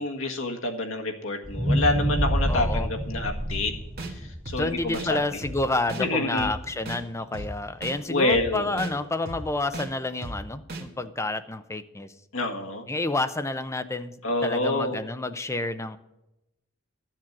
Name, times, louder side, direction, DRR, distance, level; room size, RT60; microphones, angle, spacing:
voice 1, 0.0-3.7 4.1-5.2 6.0-6.5 8.1-8.9 12.3-12.8 14.2-15.1, left 2 dB, 75° left, 3 dB, 1.6 m, -27 dB
sound 1, 1.4-5.7 6.2-6.3, equal, 10° right, 3.8 m, -27 dB
voice 2, 2.5-2.9 4.6-12.1 12.9-16.0, left 2 dB, 15° left, 10 dB, 0.6 m, -29 dB
sound 2, 3.5-3.6 4.0-4.1 4.5-4.6 4.9-5.1 5.4-5.5 5.9-6.0 6.4-6.5 6.9-7.0 7.3-7.5 7.8-7.9 8.3-8.4 8.8-8.9 9.3-9.4 9.7-9.9 10.2-10.3 10.7-10.8, right 2 dB, 50° right, 1.8 m, -35 dB
12.0 x 7.5 x 6.0 m, 0.90 s
head